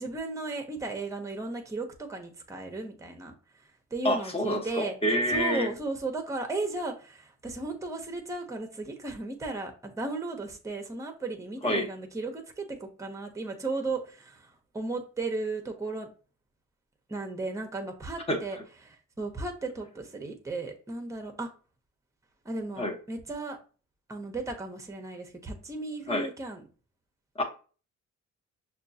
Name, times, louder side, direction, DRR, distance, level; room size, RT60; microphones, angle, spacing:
voice 1, 0.0-3.3 3.9-5.0 5.3-16.1 17.1-18.6 18.8-21.5 22.4-23.6 24.1-26.6, right 3 dB, 10° right, 4 dB, 0.8 m, -35 dB
voice 2, 4.0-5.7 11.6-11.9 18.3-18.4 22.8-22.9 26.1-26.3 27.4-27.5, equal, 20° left, 3 dB, 0.9 m, -27 dB
5.8 x 2.4 x 2.7 m, 0.37 s
cardioid pair, 90°, 30 cm